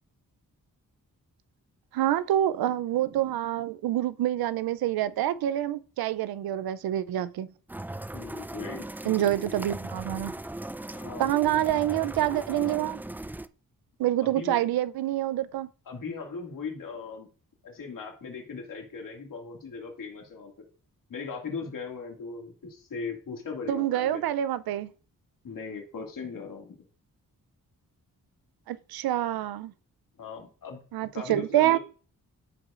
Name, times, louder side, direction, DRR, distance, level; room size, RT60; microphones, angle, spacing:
voice 1, 1.9-7.5 9.0-10.3 11.2-13.0 14.0-15.7 23.7-24.9 28.7-29.7 30.9-31.8, right 12 dB, 85° right, 0.5 m, -27 dB
sound 1, 7.7-13.5, right 1 dB, 5° right, 0.3 m, -38 dB
voice 2, 8.1-8.9 10.9-11.4 14.2-14.6 15.9-17.3 17.6-20.5 21.1-24.2 25.4-26.8 30.2-30.8 31.1-31.8, left 5 dB, 65° left, 2.2 m, -38 dB
14.5 x 4.9 x 2.5 m
cardioid pair, 60°, 35 cm